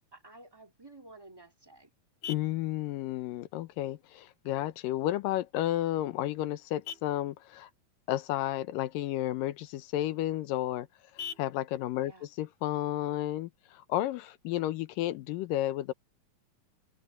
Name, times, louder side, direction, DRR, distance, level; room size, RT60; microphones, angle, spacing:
voice 1, 0.1-1.9 12.0-12.3, right 2 dB, 10° right, 1.2 m, -52 dB
Vehicle horn car horn honking, 1.0-14.0, left 8 dB, 60° left, 3.5 m, -51 dB
voice 2, 2.3-7.7 8.1-10.9 11.4-15.9, left 14 dB, 85° left, 2.5 m, -32 dB
omnidirectional pair, 4.0 m